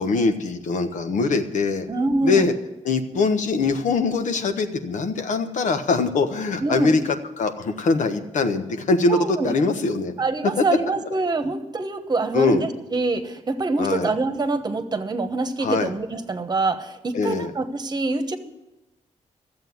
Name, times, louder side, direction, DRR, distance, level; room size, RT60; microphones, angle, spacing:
voice 1, 0.0-1.9 2.2-2.5 2.8-7.0 7.4-9.2 9.4-10.1 12.3-12.6 13.8-14.1 15.6-15.9 17.1-17.5, left 4 dB, 85° left, 7 dB, 1.2 m, -22 dB
voice 2, 1.9-2.5 6.6-6.9 9.1-9.5 10.2-18.4, right 3 dB, 35° right, 8 dB, 1.2 m, -25 dB
13.5 x 7.7 x 9.4 m, 0.96 s
wide cardioid pair, 130°, 12 cm